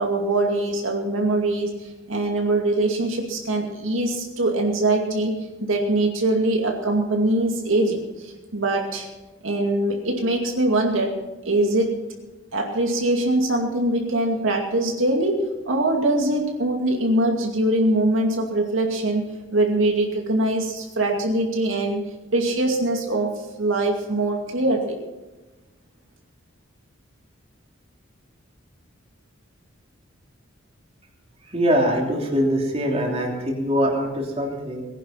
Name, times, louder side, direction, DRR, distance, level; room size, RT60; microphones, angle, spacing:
voice 1, 0.0-9.1 9.4-11.1 11.4-12.0 12.5-19.2 19.5-22.0 22.3-25.0, right 2 dB, 75° right, 1 dB, 2.4 m, -22 dB
voice 2, 31.5-34.8, equal, 30° right, -1 dB, 3.1 m, -23 dB
19.0 x 11.0 x 5.9 m, 1.1 s
head